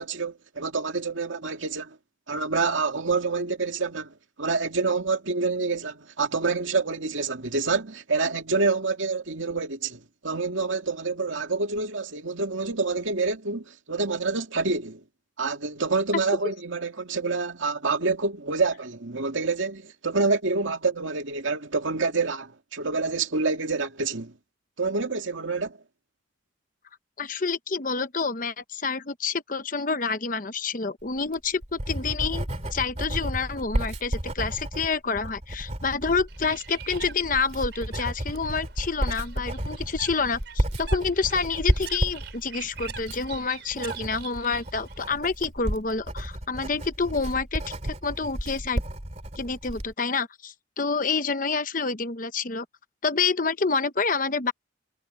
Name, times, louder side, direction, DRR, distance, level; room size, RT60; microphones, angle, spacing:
voice 1, 0.0-2.0 2.3-15.0 15.4-24.3 24.8-25.8, right 4 dB, 80° right, 2.3 m, -27 dB
voice 2, 27.2-48.8 49.4-52.7 53.0-54.5, left 4 dB, 45° left, 0.9 m, -28 dB
Writing, 31.2-49.9, equal, 35° right, 2.7 m, -32 dB
Bird, 36.3-45.1, right 7 dB, 60° right, 5.6 m, -44 dB
head